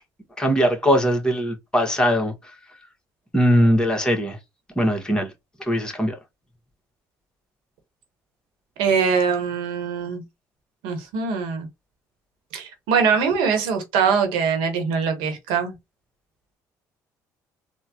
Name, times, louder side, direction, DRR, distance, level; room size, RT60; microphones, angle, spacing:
voice 1, 0.4-2.5 3.3-4.4 4.7-5.3 5.6-6.2, equal, 10° left, 1.5 m, -20 dB
voice 2, 8.8-10.2 10.8-11.7 12.5-15.7, right 6 dB, 85° right, 1.3 m, -22 dB
3.6 x 2.4 x 2.8 m
supercardioid pair, 70°, 8 cm